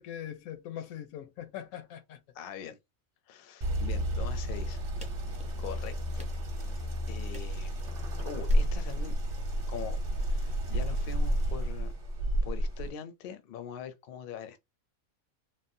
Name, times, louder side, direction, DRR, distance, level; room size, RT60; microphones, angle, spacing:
voice 1, 0.0-2.2, left 10 dB, 85° left, 1.1 m, -41 dB
voice 2, 2.3-2.8 3.3-4.9 5.6-6.3 6.5-7.8 8.2-9.2 9.7-10.0 10.2-11.9 12.4-14.6, left 8 dB, 60° left, 0.6 m, -43 dB
sound 1, 3.6-12.9, equal, 45° right, 0.9 m, -31 dB
sound 2, 5.0-5.8 6.2-6.8 7.3-8.0 8.5-9.0, equal, 10° right, 0.4 m, -50 dB
3.5 x 2.1 x 2.6 m
omnidirectional pair, 1.5 m